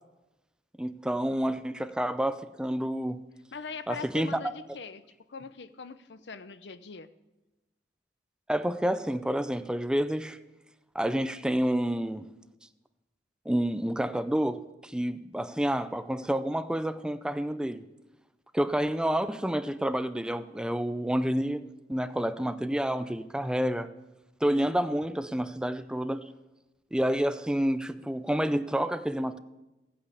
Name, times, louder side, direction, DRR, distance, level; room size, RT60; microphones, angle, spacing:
voice 1, 0.8-3.3 3.9-4.4 8.5-10.4 10.9-12.3 13.5-17.8 18.5-23.9 24.4-26.3 26.9-29.4, right 1 dB, 5° right, 0.4 m, -29 dB
voice 2, 3.5-5.0 5.3-7.1, left 5 dB, 70° left, 0.7 m, -41 dB
15.5 x 8.6 x 8.2 m
head